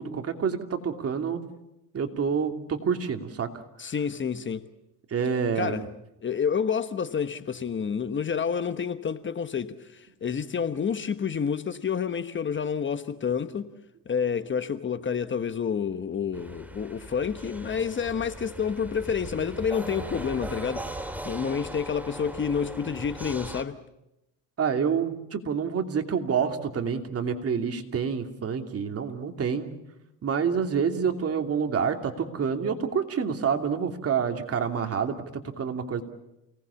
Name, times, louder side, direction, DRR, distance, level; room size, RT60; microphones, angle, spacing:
voice 1, 0.0-1.4 1.9-3.5 5.1-5.8 24.6-29.7 30.2-36.0, right 6 dB, 40° right, 2.9 m, -28 dB
voice 2, 3.8-4.6 5.6-5.9 6.2-13.7 14.1-23.8, left 7 dB, 30° left, 1.2 m, -29 dB
sound 1, 16.3-23.6, right 1 dB, 5° right, 2.4 m, -39 dB
29.0 x 19.0 x 7.1 m
cardioid pair, 105°, 36 cm